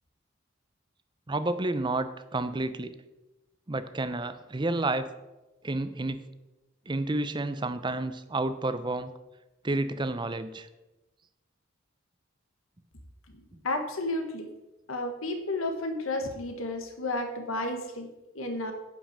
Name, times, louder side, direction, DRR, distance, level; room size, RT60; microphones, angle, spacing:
voice 1, 1.3-3.0 3.7-5.1 5.6-6.2 6.9-9.1 9.6-10.7, right 2 dB, 25° right, 12 dB, 0.6 m, -30 dB
voice 2, 13.3-14.5 14.9-18.1 18.3-18.7, left 2 dB, 90° left, 6 dB, 1.4 m, -32 dB
9.9 x 5.7 x 7.4 m, 1.0 s
head